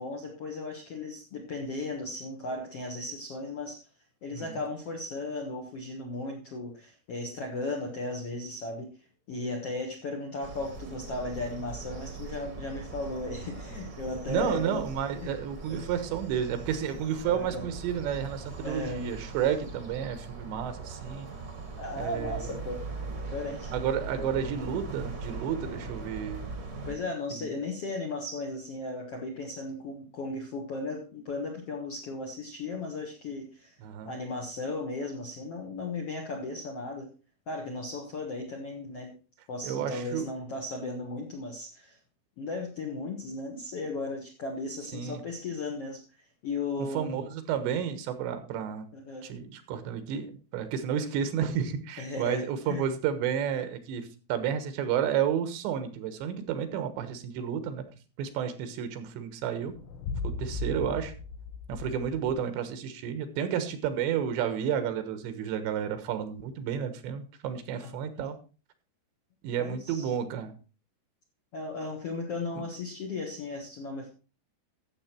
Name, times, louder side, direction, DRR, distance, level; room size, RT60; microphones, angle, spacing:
voice 1, 0.0-3.8 4.2-8.9 9.3-14.8 15.2-15.3 15.7-15.9 17.2-17.6 18.6-19.0 21.8-22.8 23.3-23.7 24.2-24.5 26.9-33.8 34.0-37.1 37.5-39.1 39.5-42.0 42.4-46.0 46.4-47.2 48.9-49.3 52.0-52.8 67.8-68.1 69.6-70.1 71.5-74.1, left 2 dB, 60° left, 1 dB, 1.6 m, -36 dB
sound 1, 10.4-26.9, right 4 dB, 45° right, 1.2 m, -40 dB
voice 2, 14.3-21.3 22.0-22.5 23.7-26.5 27.3-27.5 33.8-34.1 39.6-40.3 44.9-45.2 46.9-48.9 49.2-57.9 58.2-59.7 60.2-61.1 61.7-68.4 69.4-70.5 72.6-72.7, right 8 dB, 90° right, 10 dB, 3.6 m, -31 dB
sound 2, 59.7-62.5, left 3 dB, 85° left, 3.2 m, -37 dB
13.0 x 7.6 x 4.4 m, 0.35 s
omnidirectional pair, 5.0 m